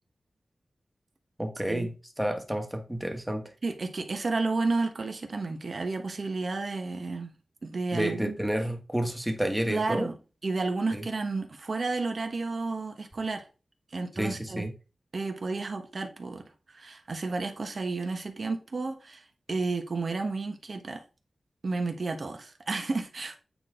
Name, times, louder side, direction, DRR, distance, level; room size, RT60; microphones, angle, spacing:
voice 1, 1.4-3.5 7.9-10.1 10.9-11.0 14.2-14.7, right 1 dB, 5° right, 1.6 m, -30 dB
voice 2, 3.6-7.3 7.6-8.4 9.7-10.2 10.4-13.4 13.9-14.6 15.1-19.2 19.5-21.0 21.6-23.4, right 3 dB, 55° right, 1.5 m, -31 dB
8.8 x 4.2 x 3.9 m
wide cardioid pair, 80°, 0 cm